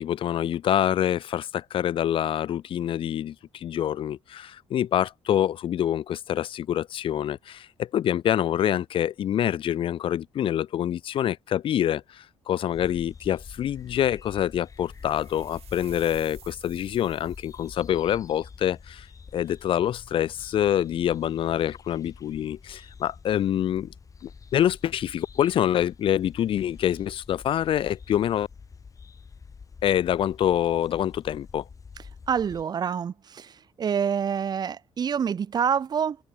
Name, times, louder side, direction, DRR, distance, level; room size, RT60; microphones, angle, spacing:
voice 1, 0.0-19.1 19.3-23.9 24.2-28.5 29.8-31.6, left 11 dB, 55° left, 0.5 m, -26 dB
sound 1, 12.7-32.6, left 5 dB, 30° left, 1.9 m, -47 dB
sound 2, 14.8-17.9, right 11 dB, 70° right, 3.6 m, -52 dB
voice 2, 32.3-36.2, right 7 dB, 40° right, 0.8 m, -27 dB
cardioid pair, 115°, 11 cm